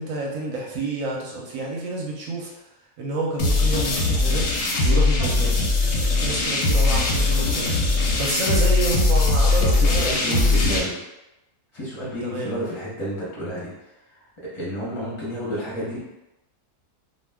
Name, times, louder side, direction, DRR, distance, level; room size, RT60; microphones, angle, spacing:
voice 1, 0.0-2.6 3.0-5.5 6.1-7.7 8.2-10.8 12.2-12.5, right 2 dB, 70° right, -2 dB, 0.9 m, -29 dB
sound 1, 3.4-10.8, left 3 dB, 60° left, 0.7 m, -20 dB
voice 2, 9.8-10.9 11.7-13.7 14.5-16.0, equal, 25° left, -8 dB, 0.6 m, -30 dB
2.4 x 2.2 x 3.4 m, 0.96 s
omnidirectional pair, 1.7 m